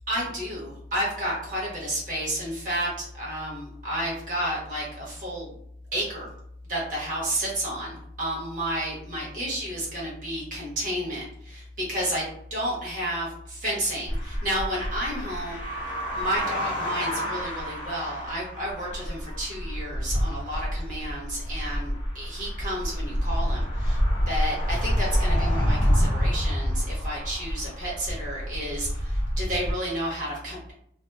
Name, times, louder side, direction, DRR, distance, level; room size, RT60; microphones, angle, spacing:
voice 1, 0.1-5.5 5.9-6.3 6.7-15.6 16.1-24.0 24.3-30.7, equal, 45° right, -5 dB, 1.0 m, -31 dB
sound 1, 14.1-29.7, equal, 30° left, 0.6 m, -28 dB
2.6 x 2.1 x 2.3 m, 0.71 s
head